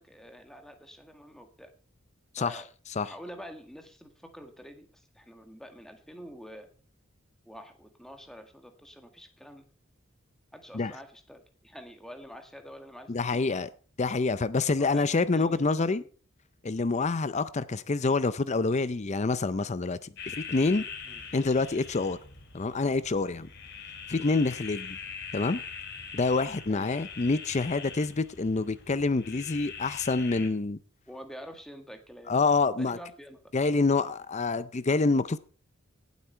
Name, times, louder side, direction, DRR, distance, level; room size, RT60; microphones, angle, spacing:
voice 1, 0.0-1.7 2.4-2.7 3.0-6.7 7.4-9.6 10.5-13.5 14.3-16.1 21.0-21.3 26.7-26.9 31.1-32.4 32.8-33.5, equal, ahead, 1.8 m, -47 dB
voice 2, 13.1-13.7 14.0-16.0 16.6-20.0 20.3-20.8 21.3-22.2 22.5-23.5 24.1-25.0 25.3-25.6 26.1-30.8 32.3-33.0 33.5-35.4, left 3 dB, 35° left, 0.5 m, -27 dB
sound 1, 20.2-30.5, left 6 dB, 55° left, 2.4 m, -42 dB
18.0 x 8.3 x 4.5 m
head